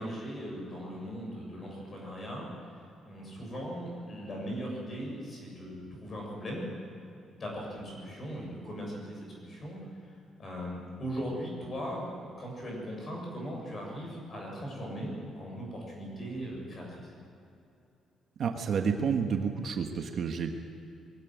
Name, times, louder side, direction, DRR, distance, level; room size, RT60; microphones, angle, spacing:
voice 1, 0.0-2.5 3.0-6.7 7.4-9.8 10.4-12.1 12.4-17.1, equal, 30° left, -1 dB, 7.5 m, -39 dB
voice 2, 18.4-20.5, right 6 dB, 45° right, 4 dB, 1.4 m, -30 dB
22.5 x 17.0 x 9.3 m, 2.7 s
cardioid pair, 180°, 0 cm